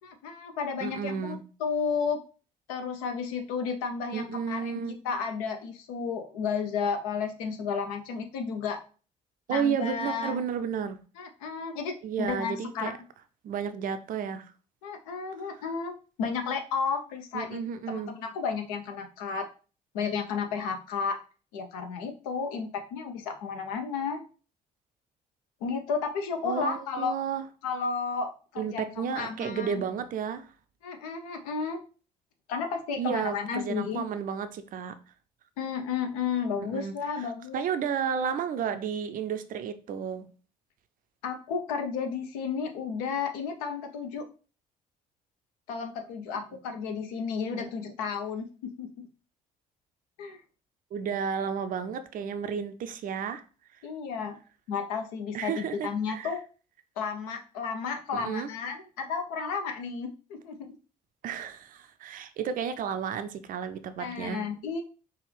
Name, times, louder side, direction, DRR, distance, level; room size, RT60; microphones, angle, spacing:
voice 1, 0.0-2.2 2.7-8.8 9.5-10.4 11.2-13.0 14.8-17.6 17.9-19.5 19.9-21.2 21.5-24.2 25.6-27.2 27.6-29.8 30.8-31.8 32.5-34.0 35.6-37.6 41.2-44.3 45.7-48.9 50.2-50.4 53.8-54.4 54.7-56.4 57.0-60.6 64.0-64.8, left 5 dB, 70° left, 0.6 m, -32 dB
voice 2, 0.8-1.4 4.1-5.0 9.5-11.0 12.0-12.9 13.4-14.5 17.3-18.1 26.4-27.4 28.6-30.5 33.0-35.0 36.6-36.9 37.2-40.3 47.5-47.7 50.9-53.4 55.3-56.3 58.1-58.5 61.2-64.4, right 7 dB, 45° right, 0.5 m, -32 dB
4.7 x 2.4 x 3.3 m
figure-of-eight pair, 45°, 19 cm